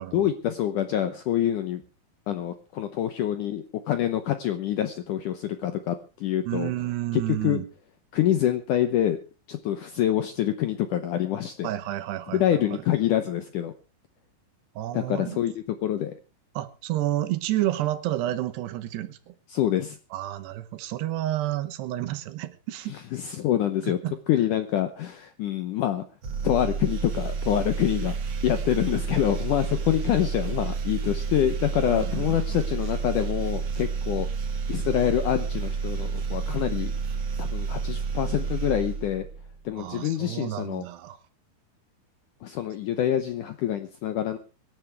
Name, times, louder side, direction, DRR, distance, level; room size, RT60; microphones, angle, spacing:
voice 1, 0.1-1.8 2.3-6.7 7.1-7.6 8.1-9.2 9.5-11.7 12.3-13.7 14.9-16.1 19.5-20.0 22.9-24.0 24.3-26.0 26.4-28.2 28.4-34.3 34.7-36.9 37.4-39.3 39.7-40.9 42.4-44.4, left 11 dB, 75° left, 9 dB, 1.9 m, -26 dB
voice 2, 6.4-7.7 11.6-12.8 14.8-15.5 16.5-19.3 20.1-22.9 23.8-24.2 31.8-32.6 39.8-41.2, right 14 dB, 80° right, 9 dB, 3.2 m, -30 dB
sound 1, 26.2-39.6, right 5 dB, 45° right, 1.9 m, -30 dB
25.0 x 10.5 x 3.5 m, 0.33 s
omnidirectional pair, 4.8 m